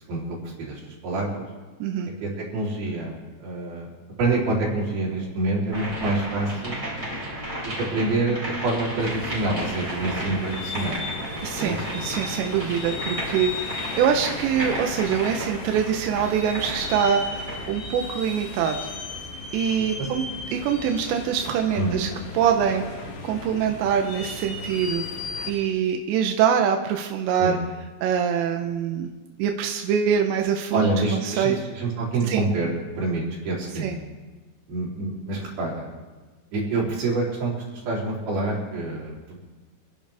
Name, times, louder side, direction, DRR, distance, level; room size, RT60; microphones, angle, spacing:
voice 1, 0.1-1.4 2.2-3.9 4.2-6.8 7.9-11.0 11.6-11.8 19.8-20.1 21.7-22.0 27.4-27.6 30.7-32.7 33.0-33.9 34.7-35.9 36.5-39.4, right 2 dB, 50° right, -4 dB, 5.0 m, -27 dB
sound 1, 5.7-17.8, right 1 dB, 15° right, 3.6 m, -33 dB
sound 2, 9.0-25.5, left 3 dB, 70° left, 4.6 m, -36 dB
voice 2, 11.4-18.9 19.5-20.2 20.5-22.1 22.3-25.0 25.5-27.6 28.0-29.1 29.4-31.6 32.3-32.4 33.8-34.0, right 8 dB, 80° right, 3 dB, 2.6 m, -24 dB
27.5 x 11.0 x 3.5 m, 1.3 s
omnidirectional pair, 6.0 m